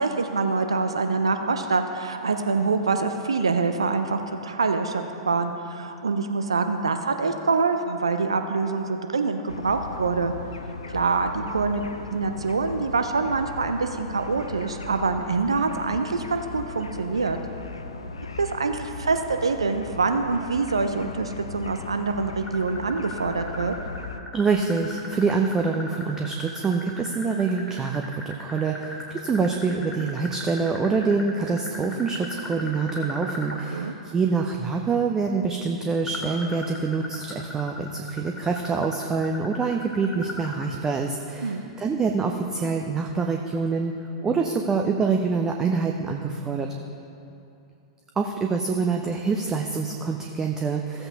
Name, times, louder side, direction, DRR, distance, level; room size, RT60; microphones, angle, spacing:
voice 1, 0.0-10.3 10.9-11.9 12.1-17.4 18.4-23.7 33.7-33.9 41.4-41.6, right 4 dB, 75° right, 6 dB, 0.5 m, -25 dB
sound 1, 9.5-24.2, left 4 dB, 75° left, 0.5 m, -38 dB
sound 2, 22.5-33.6 36.1-40.7, left 2 dB, 15° left, 1.9 m, -38 dB
voice 2, 24.3-43.9 44.2-46.7 48.2-51.1, right 4 dB, 20° right, 3 dB, 0.5 m, -26 dB
15.5 x 7.8 x 2.9 m, 2.7 s
figure-of-eight pair, 100°, 3 cm